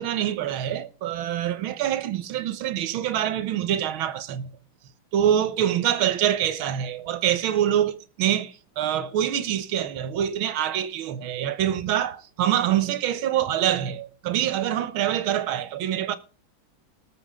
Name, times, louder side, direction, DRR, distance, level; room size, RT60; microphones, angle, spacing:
voice 1, 0.0-4.5 5.1-16.2, right 10 dB, 80° right, 1.8 m, -25 dB
19.5 x 7.4 x 3.6 m
omnidirectional pair, 2.2 m